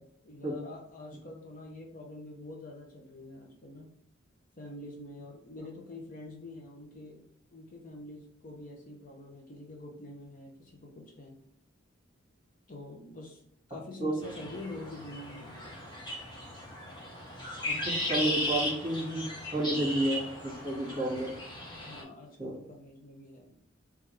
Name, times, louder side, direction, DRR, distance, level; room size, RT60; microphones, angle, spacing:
voice 1, 0.2-4.0 4.6-11.4 12.7-15.8 21.8-23.6, left 2 dB, 45° left, 0 dB, 0.8 m, -46 dB
sound 1, 14.2-22.0, left 1 dB, 25° left, 1.0 m, -36 dB
voice 2, 18.1-19.3 19.5-21.3 22.4-22.5, right 1 dB, 25° right, -4 dB, 1.7 m, -30 dB
3.6 x 3.3 x 3.2 m, 0.68 s
head